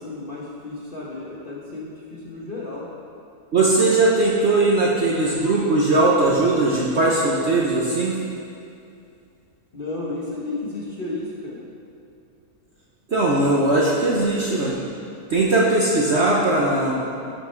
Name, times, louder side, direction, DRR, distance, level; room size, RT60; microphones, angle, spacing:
voice 1, 0.0-2.9 9.7-11.6, left 2 dB, 40° left, -6 dB, 1.2 m, -33 dB
voice 2, 3.5-8.1 13.1-14.8 15.3-17.0, right 2 dB, 50° right, -4 dB, 1.0 m, -19 dB
11.5 x 5.9 x 4.5 m, 2.5 s
omnidirectional pair, 1.7 m